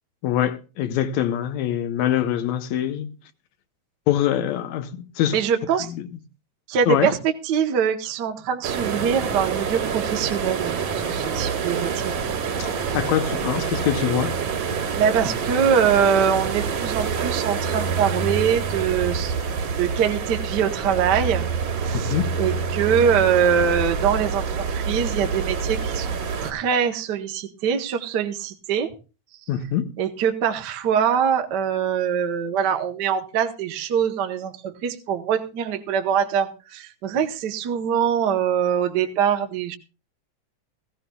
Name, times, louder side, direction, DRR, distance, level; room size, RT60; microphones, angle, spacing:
voice 1, 0.2-3.1 4.1-5.4 5.8-6.1 6.9-7.1 12.6-14.4 21.9-22.3 29.5-29.9, left 11 dB, 75° left, 2.0 m, -24 dB
voice 2, 5.3-5.9 6.7-12.2 12.7-13.0 15.0-19.3 19.8-21.5 21.7-28.9 30.0-39.8, right 7 dB, 65° right, 1.0 m, -23 dB
sound 1, 8.6-26.5, right 6 dB, 85° right, 3.5 m, -27 dB
18.5 x 15.5 x 2.3 m
omnidirectional pair, 3.3 m